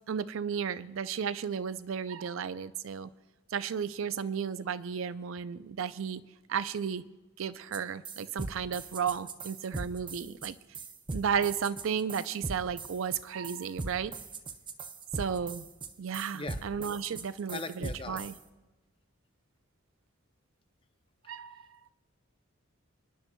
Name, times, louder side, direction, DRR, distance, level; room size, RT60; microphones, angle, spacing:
voice 1, 0.1-3.1 3.5-6.2 6.5-7.0 7.4-10.6 11.1-14.1 15.2-15.7 16.0-18.3 21.3-21.6, right 7 dB, 70° right, 15 dB, 0.4 m, -33 dB
sound 1, 7.7-18.4, right 3 dB, 25° right, 0.5 m, -39 dB
voice 2, 17.5-18.3, left 3 dB, 25° left, 8 dB, 0.5 m, -39 dB
30.0 x 10.5 x 2.3 m, 1.2 s
head